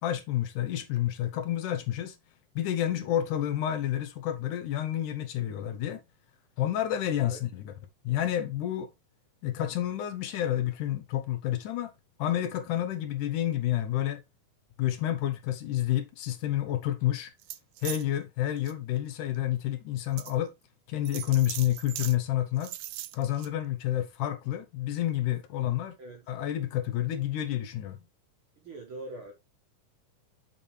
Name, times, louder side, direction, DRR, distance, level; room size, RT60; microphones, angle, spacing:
voice 1, 0.0-2.2 2.6-6.0 6.6-7.7 8.0-8.9 9.4-11.9 12.2-14.2 14.8-17.3 17.8-20.5 20.9-22.7 23.1-26.0 26.3-28.0, left 12 dB, 75° left, 2.3 m, -29 dB
sound 1, 17.4-18.0 18.6-18.7 19.4-19.5 20.2-20.4 21.1-22.2 22.6-23.5, right 15 dB, 85° right, 1.6 m, -39 dB
voice 2, 28.6-29.3, right 2 dB, 55° right, 1.5 m, -42 dB
7.2 x 5.8 x 3.2 m
omnidirectional pair, 3.9 m